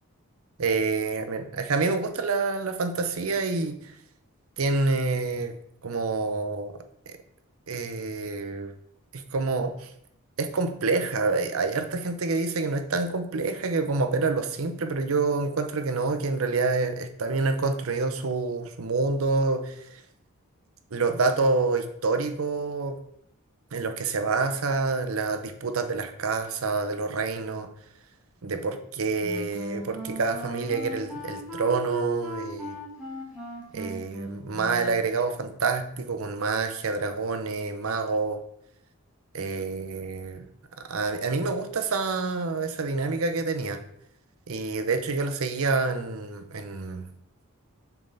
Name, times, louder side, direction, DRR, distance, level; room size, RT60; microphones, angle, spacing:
voice 1, 0.6-3.8 4.6-5.5 5.8-6.8 7.1-7.2 7.7-8.7 9.1-9.9 10.4-19.8 20.9-23.0 23.7-27.7 28.4-32.8 33.7-38.4 39.3-40.5 40.9-43.8 44.5-47.1, right 3 dB, 75° right, 8 dB, 0.7 m, -27 dB
Wind instrument woodwind instrument, 29.2-35.1, right 1 dB, 5° right, 1.5 m, -37 dB
6.9 x 3.5 x 4.0 m, 0.71 s
head